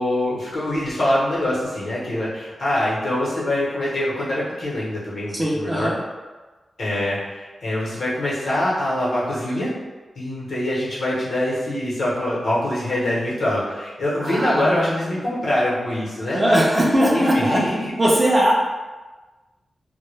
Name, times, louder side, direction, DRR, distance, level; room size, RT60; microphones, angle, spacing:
voice 1, 0.0-5.9 6.8-9.7 10.1-16.7 17.1-17.9, left 1 dB, 65° left, -6 dB, 0.8 m, -24 dB
voice 2, 5.3-5.9 14.2-15.2 16.3-17.6 18.0-18.5, equal, 15° right, -4 dB, 0.4 m, -19 dB
2.2 x 2.1 x 3.1 m, 1.3 s
wide cardioid pair, 150°, 0 cm